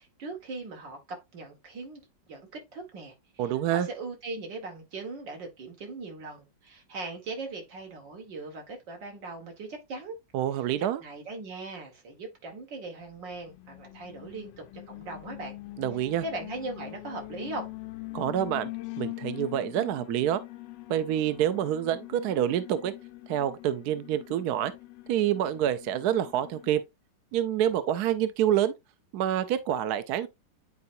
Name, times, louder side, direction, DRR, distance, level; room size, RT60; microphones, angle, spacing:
voice 1, 0.0-2.0 2.3-10.2 10.8-15.6 16.2-17.7, right 3 dB, 85° right, 2.4 m, -39 dB
voice 2, 3.4-3.9 10.3-11.0 15.8-16.2 18.1-18.7 19.0-20.4 20.9-22.9 23.3-24.7 25.1-26.8 27.3-28.7 29.1-30.3, right 11 dB, 70° right, 1.1 m, -27 dB
Alarm, 13.3-26.8, left 20 dB, 90° left, 1.3 m, -43 dB
9.6 x 4.5 x 2.6 m
omnidirectional pair, 1.9 m